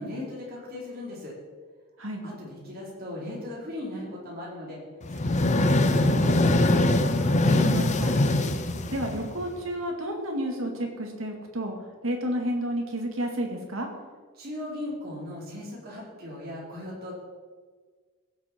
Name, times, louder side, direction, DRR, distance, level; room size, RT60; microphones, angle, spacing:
voice 1, 0.0-1.3 2.2-4.8 5.1-6.4 14.3-17.1, left 1 dB, 45° right, -4 dB, 3.9 m, -38 dB
sound 1, 5.0-9.6, left 1 dB, 35° left, 0.7 m, -22 dB
voice 2, 7.2-8.2 8.9-11.7 12.0-13.9, equal, 70° right, 2 dB, 2.1 m, -31 dB
16.5 x 7.5 x 4.5 m, 1.5 s
head